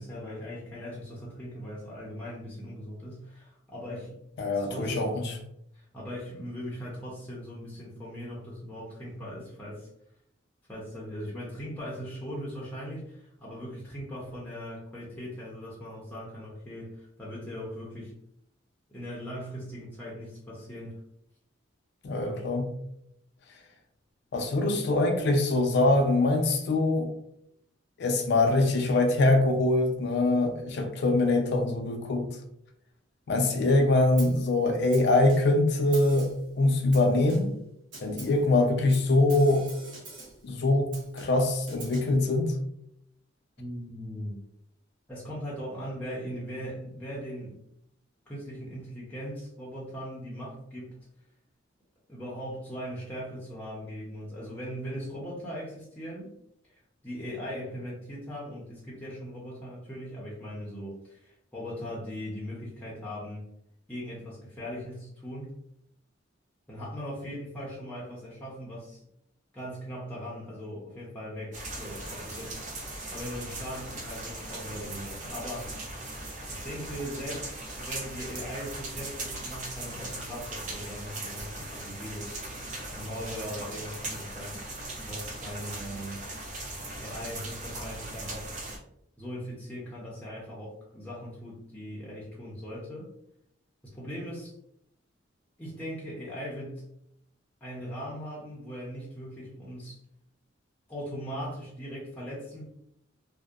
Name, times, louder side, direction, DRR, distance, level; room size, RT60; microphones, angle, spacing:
voice 1, 0.0-4.2 4.5-5.2 5.7-9.9 10.7-18.1 18.9-21.0 22.2-22.5 43.6-44.4 45.1-47.6 48.3-51.0 52.1-56.4 56.7-63.5 63.9-65.5 66.7-69.0 69.5-72.6 73.1-75.7 76.5-84.6 85.0-86.2 87.0-88.5 89.2-93.1 93.9-94.5 95.6-96.8 97.6-100.0 100.9-102.6, equal, 10° left, -6 dB, 0.5 m, -39 dB
voice 2, 4.4-5.3 22.0-22.7 24.3-27.1 28.0-32.4 33.3-37.5 38.0-39.7 40.4-42.5, left 2 dB, 60° left, 3 dB, 0.4 m, -24 dB
Snare drum, 34.2-34.5 34.9-35.6 35.9-36.5 36.9-37.6 37.9-38.5 38.9-40.5 40.9-42.2, right 2 dB, 80° right, 0.9 m, -45 dB
sound 1, 71.5-88.8, right 2 dB, 40° right, 0.5 m, -39 dB
2.6 x 2.0 x 2.3 m, 0.75 s
head